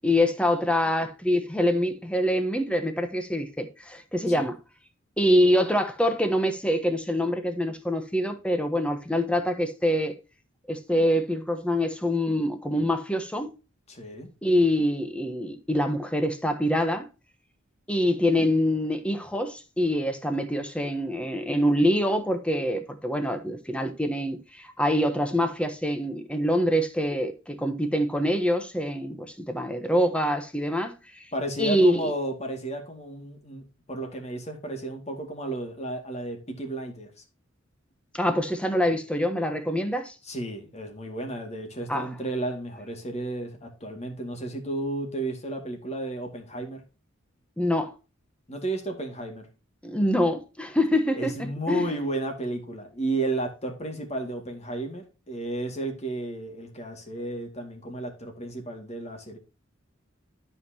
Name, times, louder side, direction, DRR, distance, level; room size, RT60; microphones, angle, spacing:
voice 1, 0.0-4.6 5.2-10.1 10.7-13.5 14.4-17.1 17.9-31.2 31.6-32.1 38.1-40.1 41.9-42.1 47.6-47.9 49.8-51.3 51.7-51.9, equal, 5° left, 1.1 m, -25 dB
voice 2, 13.9-14.3 31.3-37.1 40.2-46.8 48.5-49.5 51.1-59.4, right 2 dB, 35° left, 2.3 m, -33 dB
13.0 x 5.6 x 2.9 m
head